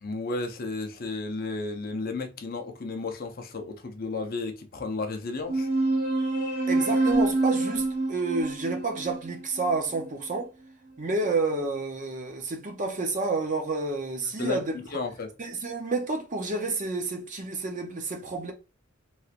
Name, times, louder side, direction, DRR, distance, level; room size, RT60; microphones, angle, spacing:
voice 1, 0.0-5.7 14.4-14.6 14.9-15.3, left 3 dB, 45° left, 0.5 m, -33 dB
sound 1, 5.5-10.4, right 2 dB, 10° right, 1.5 m, -27 dB
voice 2, 6.7-10.5 11.0-14.8 15.4-18.5, right 3 dB, 40° right, 0.6 m, -30 dB
3.1 x 3.0 x 2.4 m
head